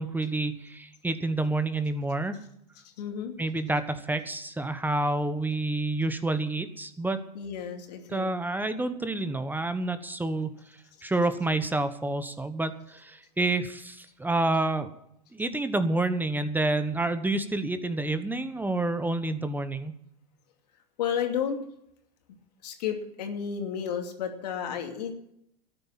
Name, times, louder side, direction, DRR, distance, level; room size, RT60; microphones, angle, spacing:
voice 1, 0.0-2.4 3.4-7.2 8.1-14.9 15.3-19.9, right 2 dB, 10° right, 11 dB, 1.1 m, -28 dB
voice 2, 3.0-3.3 7.3-8.3 21.0-21.6 22.6-25.1, left 8 dB, 75° left, 4 dB, 2.7 m, -32 dB
13.0 x 9.7 x 7.5 m, 0.75 s
hypercardioid pair, 100°, 21 cm